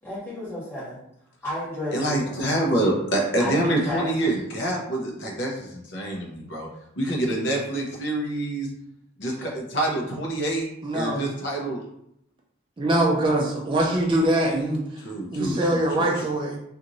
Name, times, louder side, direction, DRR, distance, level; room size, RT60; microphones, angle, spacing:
voice 1, 0.0-1.0 1.4-2.4 3.4-4.1, left 1 dB, 10° left, -11 dB, 1.5 m, -32 dB
voice 2, 1.9-6.7 7.0-8.7 9.2-10.7 10.9-11.8 15.0-16.2, right 1 dB, 60° left, -1 dB, 0.7 m, -26 dB
voice 3, 10.8-11.2 12.8-15.0 15.3-16.6, right 1 dB, 25° right, -2 dB, 0.3 m, -23 dB
2.9 x 2.5 x 2.6 m, 0.77 s
head